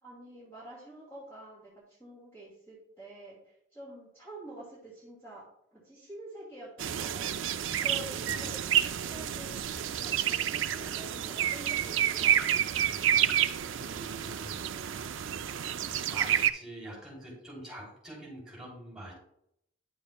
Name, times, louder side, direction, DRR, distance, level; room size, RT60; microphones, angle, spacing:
voice 1, 0.0-5.4 5.7-7.3 7.8-8.6 8.9-12.6 13.2-13.4, right 1 dB, 15° left, -6 dB, 2.4 m, -47 dB
sound 1, 6.8-16.5, right 10 dB, 70° right, 0.4 m, -29 dB
voice 2, 8.2-8.5 13.7-14.6 15.8-19.1, right 1 dB, 5° right, -4 dB, 3.2 m, -45 dB
10.0 x 7.0 x 2.3 m, 0.74 s
head